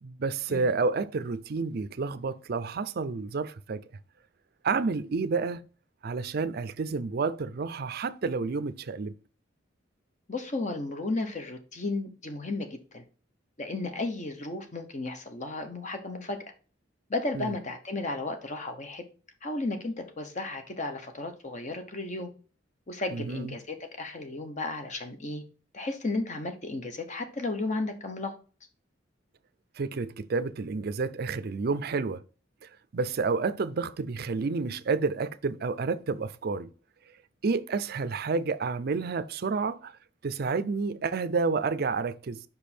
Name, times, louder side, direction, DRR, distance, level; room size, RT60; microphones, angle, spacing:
voice 1, 0.0-3.9 4.6-5.6 6.0-9.1 17.3-17.5 23.1-23.6 29.8-32.2 32.9-36.7 37.4-39.9 40.2-42.4, right 4 dB, 55° right, 0.5 m, -30 dB
voice 2, 10.3-13.0 13.6-16.4 17.1-19.0 19.4-22.3 22.9-25.4 25.7-28.3, left 2 dB, 40° left, 1.1 m, -34 dB
5.4 x 5.2 x 4.3 m
head